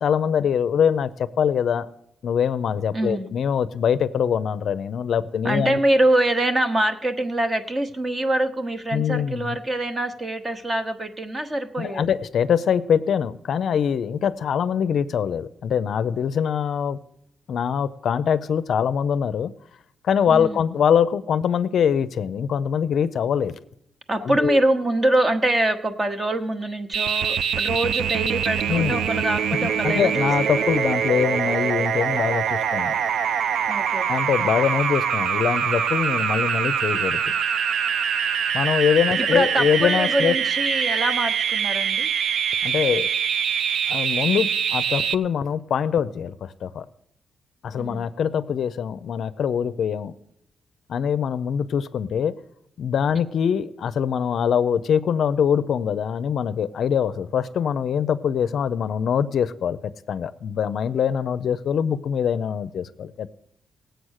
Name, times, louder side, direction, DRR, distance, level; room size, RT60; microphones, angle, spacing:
voice 1, 0.0-1.9 2.2-5.8 8.9-9.6 11.8-17.0 17.5-19.5 20.0-23.6 24.2-24.6 28.7-29.0 29.6-33.0 34.1-37.3 38.5-40.3 42.6-43.1 43.9-46.8 47.6-50.2 50.9-52.3 52.8-63.3, left 8 dB, 55° left, 13 dB, 0.5 m, -23 dB
voice 2, 2.9-3.3 5.4-12.0 20.3-20.6 24.1-30.6 33.7-34.1 39.2-42.1 47.7-48.1, right 1 dB, 20° right, 9 dB, 0.9 m, -24 dB
sound 1, 26.9-45.1, right 7 dB, 70° right, 0.5 m, -24 dB
18.0 x 7.9 x 6.4 m, 0.79 s
wide cardioid pair, 165°, 0 cm